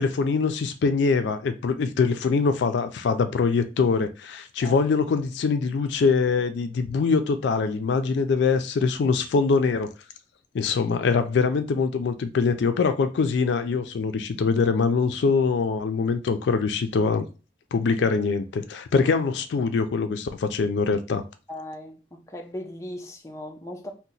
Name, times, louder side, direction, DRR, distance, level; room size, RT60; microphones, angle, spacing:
voice 1, 0.0-9.9 10.5-17.3 17.7-21.2, left 4 dB, 75° left, 0.3 m, -23 dB
voice 2, 21.5-23.9, left 1 dB, 15° left, 0.5 m, -38 dB
2.8 x 2.1 x 3.9 m
head